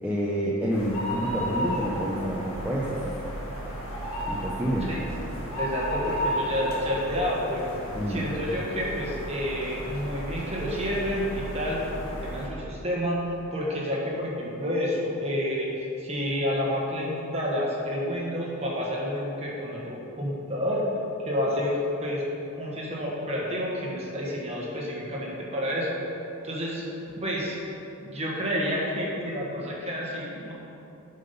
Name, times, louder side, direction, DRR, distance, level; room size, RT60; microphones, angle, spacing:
voice 1, 0.0-3.2 4.3-4.9 7.9-8.2, equal, 5° right, -6 dB, 0.6 m, -28 dB
sound 1, 0.7-12.5, equal, 70° left, 1.8 m, -33 dB
voice 2, 5.6-15.7 16.0-20.8 21.2-22.2 22.6-25.9 26.4-26.8 27.2-27.6 28.1-30.5, equal, 30° right, -4 dB, 1.4 m, -29 dB
8.2 x 5.5 x 5.4 m, 2.9 s
head